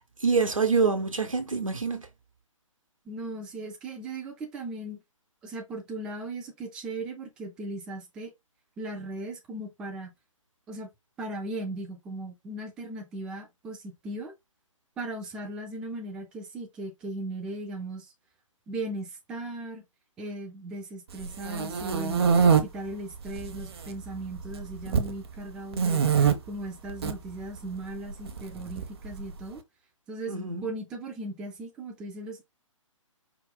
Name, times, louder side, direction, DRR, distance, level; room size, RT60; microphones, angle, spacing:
voice 1, 0.2-2.1 30.3-30.6, right 4 dB, 75° right, 1.0 m, -26 dB
voice 2, 3.1-5.0 5.4-8.3 8.8-10.1 10.7-10.9 11.2-14.3 15.0-18.1 18.7-19.8 20.2-22.2 22.6-26.0 26.5-29.6 30.1-32.4, right 2 dB, 5° right, 0.3 m, -37 dB
sound 1, 21.2-22.6 23.3-23.9 24.2-25.1 25.7-26.3 26.9-27.1 28.3-29.2, right 6 dB, 50° right, 0.7 m, -23 dB
4.7 x 2.2 x 3.7 m
figure-of-eight pair, 130°, 17 cm